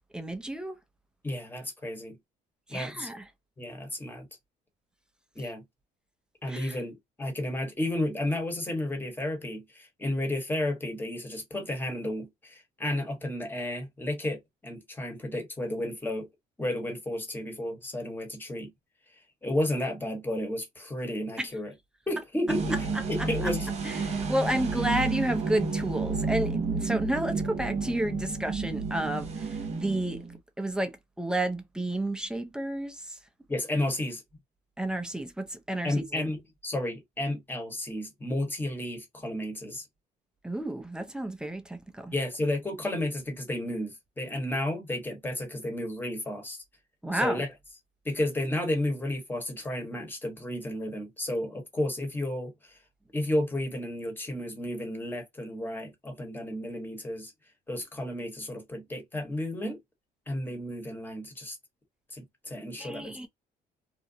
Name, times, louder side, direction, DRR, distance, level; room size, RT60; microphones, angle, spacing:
voice 1, 0.1-0.8 2.7-3.3 6.5-6.8 21.4-21.5 23.2-23.5 23.8-30.3 30.6-33.2 34.8-36.3 40.4-42.1 47.0-47.4 62.8-63.3, right 1 dB, 5° right, 0.5 m, -31 dB
voice 2, 1.2-2.2 2.7-3.1 3.6-4.3 5.4-5.6 6.4-16.3 16.6-18.7 19.4-21.7 22.1-22.8 23.1-23.7 33.5-34.2 35.8-39.8 42.1-46.6 47.1-47.5 48.0-52.5 53.1-57.3 57.7-59.8 60.3-61.6 62.1-63.3, left 1 dB, 10° left, 1.0 m, -32 dB
sound 1, 22.5-30.4, right 4 dB, 40° right, 0.8 m, -31 dB
2.5 x 2.1 x 2.6 m
cardioid pair, 110°, 17 cm